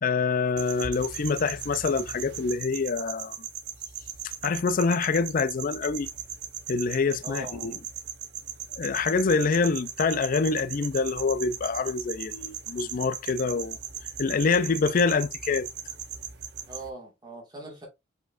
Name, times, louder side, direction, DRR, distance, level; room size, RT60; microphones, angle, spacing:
voice 1, 0.0-3.4 4.4-6.1 6.7-7.7 8.8-13.8 14.2-15.7, left 4 dB, 45° left, 0.4 m, -26 dB
sound 1, 0.6-16.9, right 9 dB, 60° right, 0.8 m, -38 dB
voice 2, 7.2-7.8 16.7-17.9, right 2 dB, 20° right, 1.8 m, -41 dB
4.8 x 4.4 x 2.4 m
head